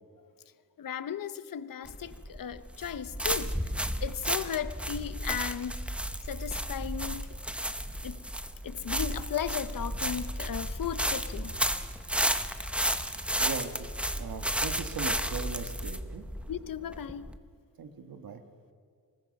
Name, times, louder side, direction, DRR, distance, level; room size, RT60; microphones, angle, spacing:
voice 1, 0.8-3.5 4.0-5.9 6.3-7.3 8.0-8.2 8.6-11.6 16.5-17.3, left 8 dB, 60° left, 14 dB, 0.9 m, -36 dB
sound 1, 1.9-17.4, equal, 5° right, 0.8 m, -33 dB
voice 2, 13.4-13.9 14.1-16.2 17.8-18.4, right 5 dB, 70° right, 7 dB, 1.7 m, -39 dB
25.0 x 20.5 x 5.3 m, 2.1 s
wide cardioid pair, 110°, 37 cm